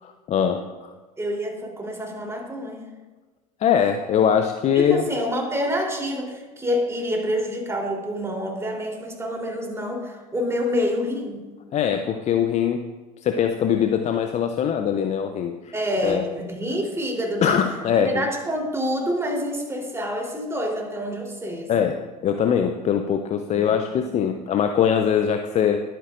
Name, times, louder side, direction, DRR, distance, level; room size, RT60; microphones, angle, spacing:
voice 1, 0.0-0.9 3.6-5.0 11.7-12.8 13.2-15.7 16.0-16.2 17.4-18.3 21.7-25.8, left 8 dB, 35° left, 6 dB, 0.7 m, -22 dB
voice 2, 1.2-2.9 4.7-11.4 15.7-17.6 18.0-21.7 23.5-24.0 24.3-24.4, equal, 15° right, 0 dB, 3.5 m, -27 dB
22.0 x 9.2 x 2.6 m, 1.3 s
figure-of-eight pair, 70°, 19 cm